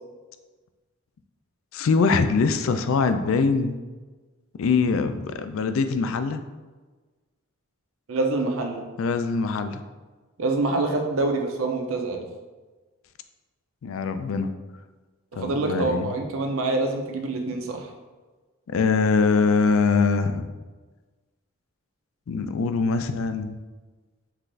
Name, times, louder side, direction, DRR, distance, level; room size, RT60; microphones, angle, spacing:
voice 1, 1.7-3.8 4.6-6.4 9.0-9.8 13.8-14.5 15.4-16.1 18.7-20.5 22.3-23.6, left 4 dB, 70° left, 10 dB, 0.3 m, -23 dB
voice 2, 8.1-8.9 10.4-12.3 15.3-17.9, right 2 dB, 75° right, 3 dB, 0.6 m, -26 dB
5.8 x 2.5 x 3.3 m, 1.3 s
head